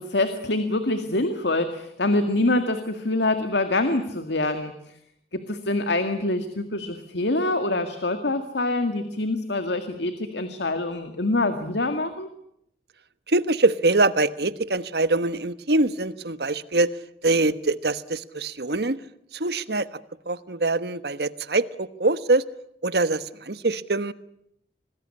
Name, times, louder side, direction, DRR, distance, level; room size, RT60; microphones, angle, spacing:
voice 1, 0.0-4.7 5.3-12.3, left 2 dB, 85° left, 8 dB, 2.1 m, -25 dB
voice 2, 13.3-16.9 17.2-19.0 19.3-19.9 20.3-22.4 22.8-24.1, right 2 dB, 65° right, 14 dB, 1.2 m, -23 dB
26.0 x 20.0 x 9.8 m, 0.75 s
head